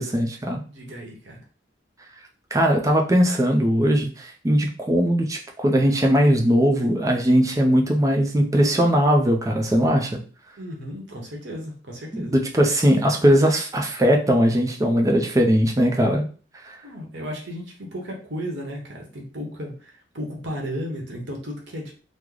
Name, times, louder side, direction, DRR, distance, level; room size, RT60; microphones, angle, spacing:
voice 1, 0.0-0.6 2.5-10.2 12.1-16.3 16.6-16.8, equal, 15° right, 2 dB, 0.4 m, -20 dB
voice 2, 0.7-1.4 10.6-12.4 16.8-21.9, equal, 60° right, 0 dB, 0.9 m, -34 dB
3.1 x 2.0 x 3.7 m, 0.39 s
head